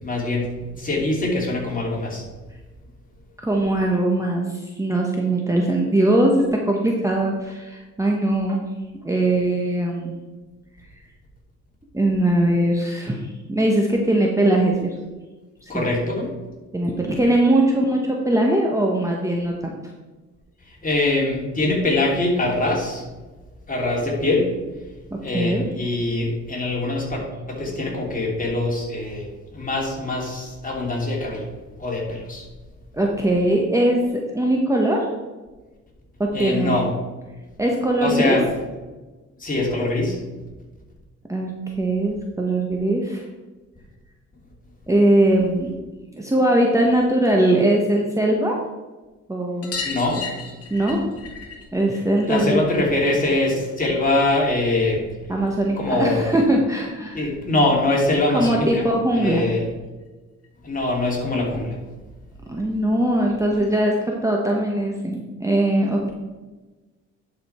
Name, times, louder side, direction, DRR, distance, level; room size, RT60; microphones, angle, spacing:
voice 1, 0.0-2.3 15.7-16.3 20.7-23.0 23.7-24.5 25.2-27.2 27.5-31.5 31.8-32.5 36.3-36.9 38.0-38.5 39.4-40.2 49.8-50.2 52.3-55.0 55.8-56.3 57.1-58.9 59.1-59.6 60.6-61.8, left 2 dB, 25° left, -3 dB, 3.2 m, -23 dB
voice 2, 3.4-8.6 9.0-10.1 11.9-14.9 15.6-15.9 16.7-19.7 25.1-25.6 32.9-35.1 36.2-36.9 37.6-38.4 41.3-43.2 44.9-45.7 46.1-48.6 49.3-49.8 50.7-51.0 51.7-52.6 55.3-57.2 58.3-59.5 62.5-66.1, right 1 dB, 10° right, -1 dB, 1.2 m, -21 dB
sound 1, 49.6-54.7 55.0-56.2 57.5-57.6 57.8-57.9 58.2-58.3 59.6-59.7 60.0-60.1 60.4-60.5 61.8-61.9 62.6-62.7, left 5 dB, 50° left, 1.6 m, -37 dB
11.0 x 5.2 x 4.4 m, 1.2 s
cardioid pair, 90°, 30 cm